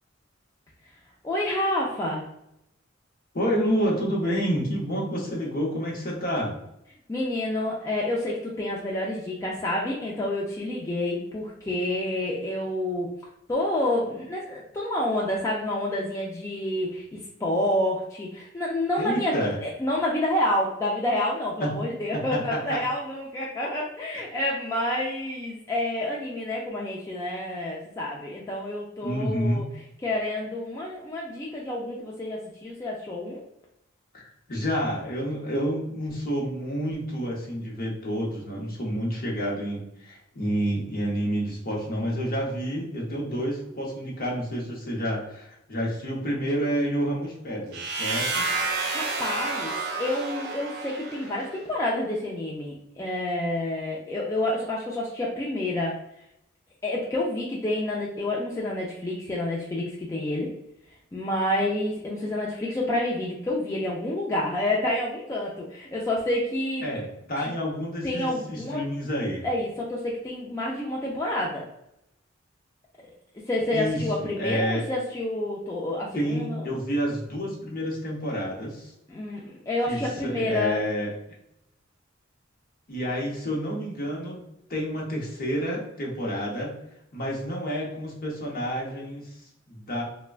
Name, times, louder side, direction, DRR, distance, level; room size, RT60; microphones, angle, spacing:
voice 1, 1.2-2.3 7.1-13.1 13.5-29.6 30.0-33.4 48.9-49.7 50.0-56.0 56.8-60.5 61.1-66.8 67.4-67.5 68.0-68.8 69.4-71.6 73.0-73.1 73.5-76.7 79.1-80.8, left 1 dB, 15° left, -4 dB, 0.3 m, -28 dB
voice 2, 3.3-6.5 19.0-19.6 21.6-21.7 22.1-22.8 29.0-29.7 34.1-48.5 66.8-69.4 73.7-74.8 76.1-78.9 79.9-81.1 82.9-84.4 84.7-86.8 87.1-90.0, equal, 50° left, -3 dB, 0.8 m, -29 dB
sound 1, 47.7-51.6, right 3 dB, 55° right, 0.6 m, -30 dB
3.3 x 2.1 x 2.4 m, 0.81 s
head